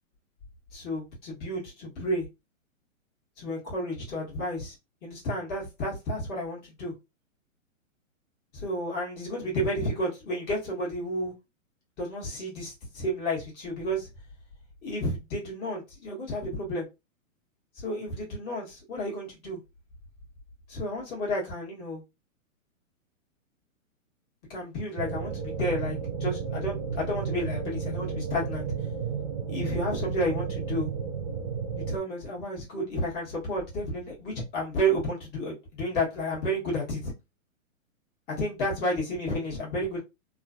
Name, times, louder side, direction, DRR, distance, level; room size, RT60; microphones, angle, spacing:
voice 1, 0.7-2.3 3.4-4.7 5.0-6.9 8.5-11.3 12.0-14.1 14.8-16.8 17.7-19.6 20.7-22.0 24.5-28.7 29.5-30.9 31.9-37.1 38.4-40.0, equal, 25° left, 1.3 m, -31 dB
sound 1, 25.0-32.0, right 6 dB, 30° right, 0.4 m, -32 dB
3.1 x 2.2 x 2.5 m
hypercardioid pair, 145°, 41 cm